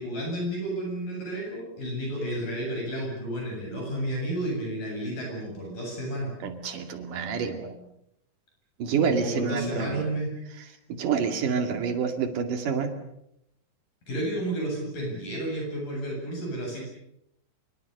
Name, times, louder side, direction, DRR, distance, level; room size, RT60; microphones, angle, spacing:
voice 1, 0.0-6.3 9.0-10.3 14.1-16.8, right 1 dB, 55° left, 0 dB, 9.5 m, -31 dB
voice 2, 6.4-7.8 8.8-10.0 10.9-12.9, right 6 dB, 55° right, 6 dB, 3.7 m, -28 dB
27.0 x 23.5 x 6.8 m, 0.79 s
omnidirectional pair, 4.7 m